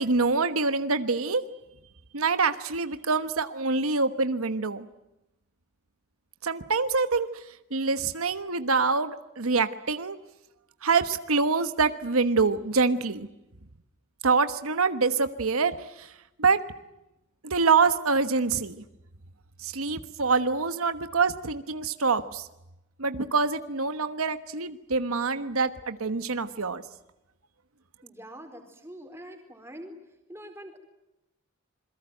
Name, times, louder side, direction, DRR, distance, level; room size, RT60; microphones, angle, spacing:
voice 1, 0.0-1.4 2.1-4.9 6.4-7.3 7.7-10.2 10.8-13.3 14.2-16.1 16.4-16.6 17.4-18.8 19.6-22.5 23.0-26.8, right 4 dB, 80° right, 10 dB, 1.2 m, -25 dB
voice 2, 28.0-30.0 30.3-30.8, equal, 10° right, 5 dB, 4.2 m, -44 dB
27.5 x 22.5 x 9.1 m, 0.93 s
head